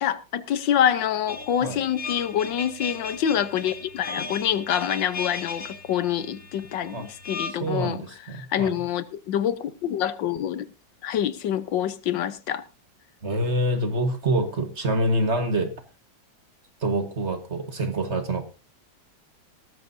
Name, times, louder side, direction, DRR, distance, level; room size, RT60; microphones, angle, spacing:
voice 1, 0.0-8.0 8.3-10.7 11.0-12.6, left 10 dB, 80° left, 1.6 m, -26 dB
sound 1, 1.3-7.5, left 4 dB, 35° left, 2.2 m, -36 dB
voice 2, 7.6-8.8 13.2-15.7 16.8-18.4, right 1 dB, 40° right, 1.8 m, -26 dB
18.0 x 14.0 x 2.7 m
omnidirectional pair, 2.0 m